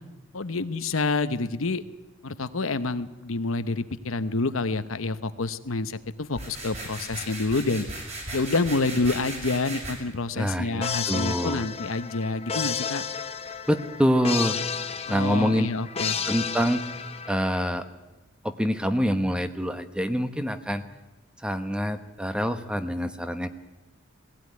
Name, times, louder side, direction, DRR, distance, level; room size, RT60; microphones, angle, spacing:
voice 1, 0.3-1.8 2.2-7.9 8.3-13.0 15.1-16.2, left 3 dB, 70° left, 12 dB, 0.9 m, -28 dB
sound 1, 6.3-9.9, right 2 dB, 30° right, 6.3 m, -37 dB
voice 2, 10.4-11.6 13.7-14.6 15.1-15.7 16.3-16.8 17.3-17.8 18.4-20.8 21.4-23.5, equal, 5° right, 9 dB, 1.1 m, -26 dB
sound 2, 10.8-17.7, left 6 dB, 30° left, 0.9 m, -32 dB
19.0 x 16.0 x 9.6 m, 1.1 s
head